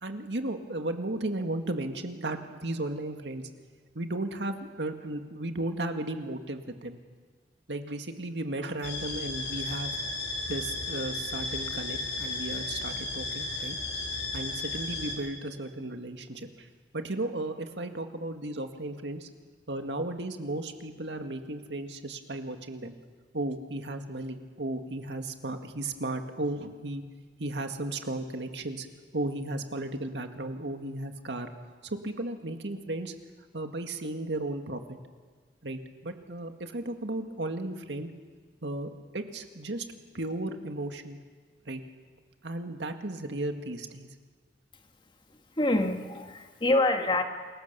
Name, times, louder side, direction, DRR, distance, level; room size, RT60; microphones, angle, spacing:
voice 1, 0.0-3.4 3.9-7.0 7.7-9.9 10.5-13.8 14.3-16.7 16.9-19.3 19.7-22.9 23.3-27.0 27.4-28.9 29.1-31.5 31.8-33.1 33.5-35.0 35.6-38.1 38.6-39.9 40.1-41.2 41.7-41.8 42.4-44.1, right 2 dB, 85° right, 6 dB, 2.0 m, -35 dB
sound 1, 8.8-15.2, left 3 dB, 85° left, 6.3 m, -34 dB
voice 2, 45.6-47.2, left 2 dB, 30° left, 5 dB, 1.8 m, -26 dB
28.0 x 22.5 x 7.0 m, 1.5 s
head